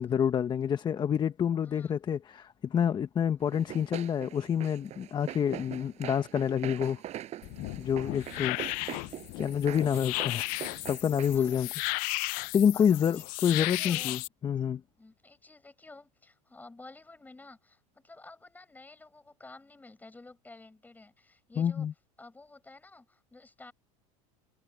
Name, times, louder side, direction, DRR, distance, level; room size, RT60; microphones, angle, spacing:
voice 1, 0.0-7.0 7.8-8.6 8.8-9.0 9.3-10.5 10.9-11.7 12.5-14.8 21.6-21.9, left 8 dB, 25° left, 1.0 m, -28 dB
voice 2, 1.6-2.0 3.4-3.5 8.5-8.6 11.3-11.7 12.7-14.2 15.0-21.9 22.2-23.7, left 2 dB, 10° left, 5.6 m, -52 dB
Run, 3.5-11.7, right 12 dB, 40° right, 6.3 m, -43 dB
sound 1, 7.4-14.3, left 24 dB, 55° left, 0.5 m, -35 dB
supercardioid pair, 125°, 17 cm